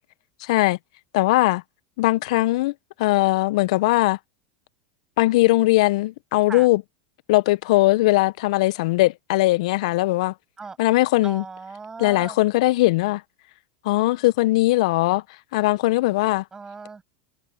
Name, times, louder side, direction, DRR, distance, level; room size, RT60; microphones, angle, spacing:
voice 1, 0.4-0.8 1.1-1.6 2.0-2.7 3.0-4.2 5.2-6.8 7.3-10.3 10.8-11.4 12.0-13.2 13.8-15.2 15.5-16.4, left 19 dB, 65° left, 1.1 m, -20 dB
voice 2, 11.2-12.4 16.5-17.0, right 4 dB, 20° right, 7.8 m, -37 dB
hypercardioid pair, 90°, 4 cm